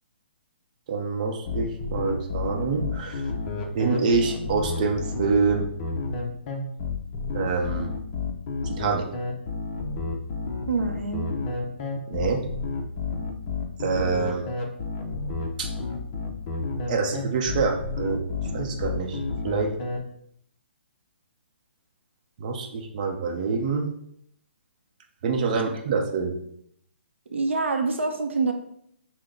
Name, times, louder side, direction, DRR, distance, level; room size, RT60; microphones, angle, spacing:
voice 1, 0.9-3.2 3.7-5.7 7.3-7.9 8.6-9.0 12.1-12.4 13.8-14.5 15.6-15.7 16.9-18.2 18.5-19.2 19.4-19.7 22.4-23.9 25.2-26.3, right 4 dB, 40° right, 2 dB, 0.7 m, -26 dB
sound 1, 1.4-20.0, left 4 dB, 35° left, 0.7 m, -30 dB
voice 2, 10.7-11.3 27.3-28.5, right 4 dB, 85° right, 4 dB, 0.7 m, -26 dB
5.8 x 2.2 x 3.8 m, 0.70 s
hypercardioid pair, 150°, 6 cm